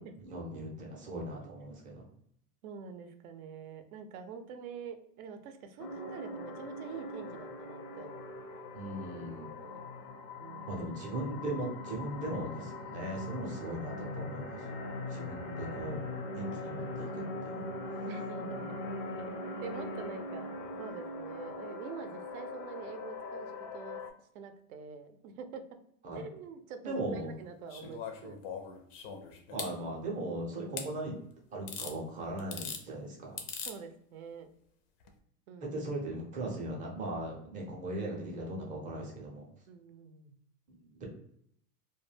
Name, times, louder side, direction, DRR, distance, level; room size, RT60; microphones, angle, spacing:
voice 1, 0.2-2.0 8.7-9.5 10.7-14.6 15.1-16.0 16.3-17.6 26.0-26.2 26.8-27.3 29.5-31.1 31.5-33.4 35.7-39.5 40.7-41.1, right 1 dB, 20° right, -2 dB, 0.5 m, -38 dB
voice 2, 1.4-1.7 2.6-8.1 9.5-9.8 10.4-10.8 14.8-15.3 18.1-18.8 19.3-20.5 20.8-24.0 24.3-25.6 26.1-28.4 33.7-34.5 35.5-35.8 39.7-40.3, right 6 dB, 65° right, 8 dB, 0.5 m, -46 dB
sound 1, 5.8-24.1, left 2 dB, 85° left, 0.7 m, -41 dB
sound 2, 27.7-29.7 30.8-30.9 31.7-31.9 32.4-32.8 33.4-33.8 35.0-35.1, left 6 dB, 40° left, 0.4 m, -41 dB
2.2 x 2.1 x 3.2 m, 0.69 s
supercardioid pair, 130°, 47 cm